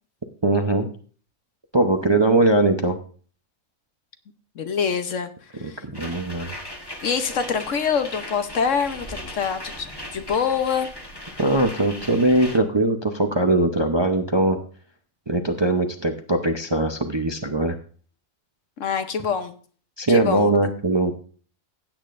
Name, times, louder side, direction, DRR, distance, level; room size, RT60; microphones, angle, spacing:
voice 1, 0.4-0.9 1.7-3.0 5.6-6.5 11.4-14.6 15.3-17.8 20.0-21.1, right 2 dB, 25° right, 5 dB, 0.6 m, -21 dB
voice 2, 4.6-5.3 5.5-5.8 7.0-10.9 18.8-19.5 20.1-20.5, left 6 dB, 65° left, 8 dB, 1.2 m, -25 dB
sound 1, 5.9-12.6, left 1 dB, 20° left, 1.2 m, -38 dB
16.0 x 8.8 x 2.5 m, 0.43 s
omnidirectional pair, 1.5 m